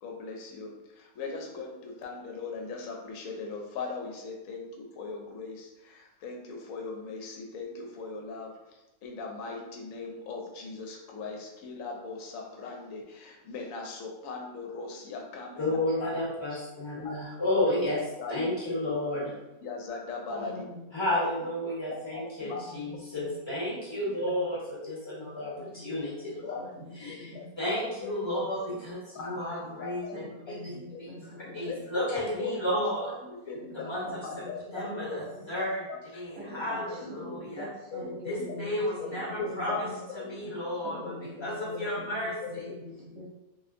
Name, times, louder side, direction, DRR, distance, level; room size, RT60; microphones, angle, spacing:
voice 1, 0.0-16.1 17.0-17.1 18.2-18.7 19.6-20.6 21.2-21.3 21.6-21.7 22.1-22.6 24.0-24.1 25.3-25.5 26.4-26.6 27.3-27.4 27.8-28.1 29.1-29.4 29.8-29.9 30.7-31.0 32.4-32.5 33.2-33.8 34.2-34.6 35.9-36.0 36.4-36.6 37.0-37.4 37.9-38.2 39.1-39.8 40.2-40.3 40.9-41.1 41.4-41.5 42.4-42.7, left 4 dB, 70° left, 1 dB, 1.0 m, -39 dB
voice 2, 15.6-19.3 20.9-24.6 24.8-26.6 27.0-30.7 31.0-31.1 31.5-33.1 33.7-34.2 34.7-35.8 36.1-37.7 38.3-39.8 40.3-41.0 41.4-42.6, left 1 dB, 20° left, -7 dB, 0.9 m, -32 dB
voice 3, 20.3-20.9 22.4-23.7 24.2-24.3 25.2-25.3 25.6-27.5 28.4-28.8 29.3-29.4 29.6-31.6 33.6-33.7 34.1-35.6 36.3-36.4 36.7-36.8 37.2-40.0 40.8-41.9 42.2-43.3, left 1 dB, 60° right, -3 dB, 1.2 m, -45 dB
3.2 x 2.7 x 2.5 m, 0.99 s
omnidirectional pair, 1.6 m